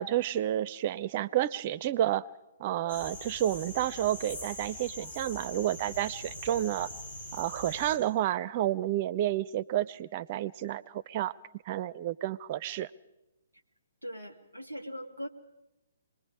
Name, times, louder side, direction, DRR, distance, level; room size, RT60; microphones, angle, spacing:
voice 1, 0.0-2.3 2.6-6.9 7.3-11.3 11.7-12.9, right 12 dB, 35° right, 21 dB, 0.6 m, -30 dB
sound 1, 2.9-8.0, left 1 dB, 55° left, 6.5 m, -42 dB
voice 2, 14.0-15.3, equal, 90° left, 4 dB, 2.3 m, -40 dB
26.0 x 21.0 x 4.8 m, 0.97 s
figure-of-eight pair, 130°, 0 cm